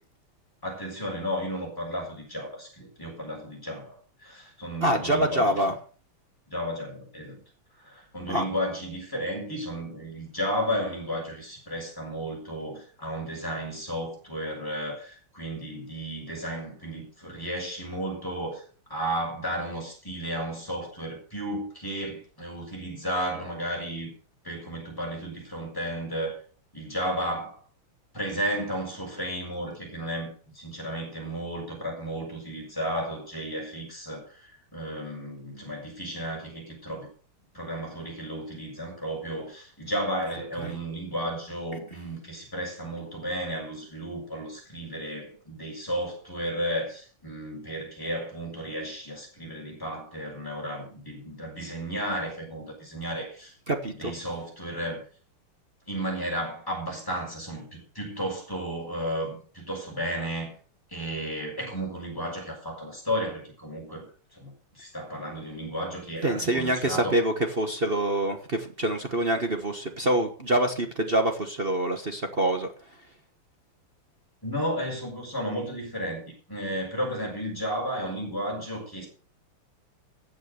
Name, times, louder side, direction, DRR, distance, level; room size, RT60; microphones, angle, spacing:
voice 1, 0.6-5.4 6.5-7.4 7.8-18.6 18.9-24.1 24.4-26.4 26.7-27.6 28.1-37.1 37.5-53.5 53.9-55.0 55.9-60.5 60.9-64.1 64.3-67.1 74.4-79.1, equal, 10° left, -1 dB, 6.9 m, -33 dB
voice 2, 4.8-5.7 8.3-8.4 40.6-40.8 53.7-54.1 66.2-72.7, right 1 dB, 30° right, 6 dB, 1.2 m, -25 dB
15.0 x 8.0 x 6.8 m, 0.42 s
omnidirectional pair, 2.4 m